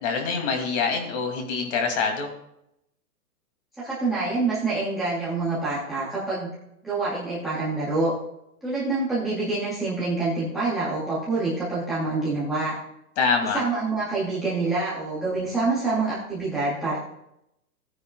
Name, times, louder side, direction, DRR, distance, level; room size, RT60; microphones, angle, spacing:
voice 1, 0.0-2.3 13.2-13.6, left 5 dB, 45° left, 3 dB, 2.6 m, -25 dB
voice 2, 3.8-6.5 6.8-8.1 8.6-12.7 13.5-17.0, right 3 dB, ahead, -9 dB, 0.4 m, -26 dB
16.5 x 9.4 x 2.3 m, 0.81 s
hypercardioid pair, 150°, 48 cm